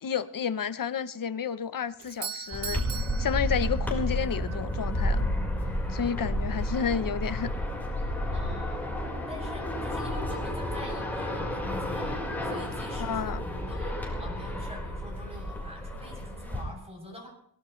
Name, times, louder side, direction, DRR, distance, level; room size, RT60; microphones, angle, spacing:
voice 1, 0.0-2.8 3.2-5.3 5.9-7.5 13.0-13.4, left 7 dB, 50° left, 0.9 m, -31 dB
Doorbell, 2.0-4.2, right 9 dB, 70° right, 1.0 m, -39 dB
sound 1, 2.5-16.6, left 1 dB, 5° left, 4.6 m, -31 dB
voice 2, 8.3-8.8 9.3-17.3, left 1 dB, 15° right, 7.6 m, -45 dB
22.5 x 19.0 x 3.2 m
wide cardioid pair, 135°, 43 cm